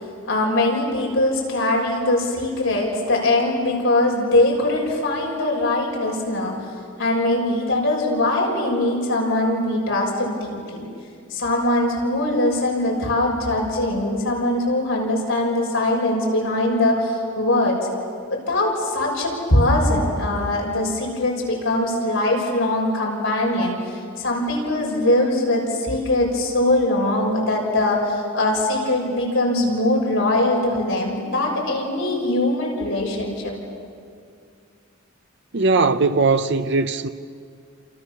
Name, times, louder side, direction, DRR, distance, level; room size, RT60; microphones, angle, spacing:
voice 1, 0.3-6.7 7.0-10.9 11.3-17.8 18.3-33.5, left 1 dB, 75° left, 6.7 m, -21 dB
voice 2, 35.5-37.1, right 3 dB, 60° right, 0.8 m, -19 dB
29.5 x 28.0 x 7.1 m
head